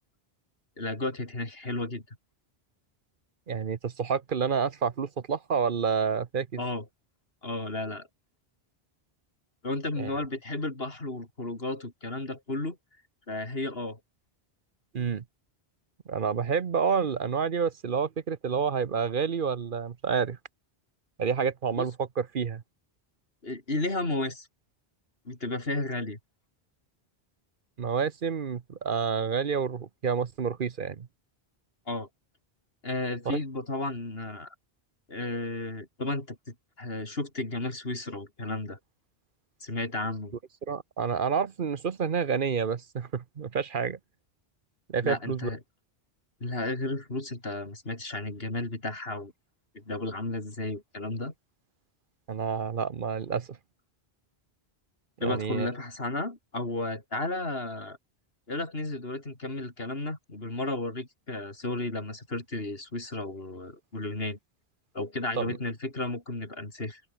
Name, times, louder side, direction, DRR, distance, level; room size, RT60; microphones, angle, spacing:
voice 1, 0.8-2.0 6.6-6.8 7.4-8.1 9.6-12.8 13.3-14.0 21.8-21.9 23.4-24.5 25.3-26.2 31.9-32.1 32.8-34.5 35.1-38.8 39.6-40.4 45.0-45.6 46.4-49.3 49.7-51.3 55.2-58.0 58.5-64.4 64.9-67.0, left 2 dB, 65° left, 4.4 m, -33 dB
voice 2, 3.5-6.6 10.0-10.1 14.9-15.2 16.1-20.4 21.2-22.6 27.8-31.1 33.3-33.4 40.7-44.0 44.9-45.5 52.3-53.6 55.2-55.7 65.4-65.6, right 6 dB, 55° right, 1.0 m, -29 dB
open air
omnidirectional pair, 1.1 m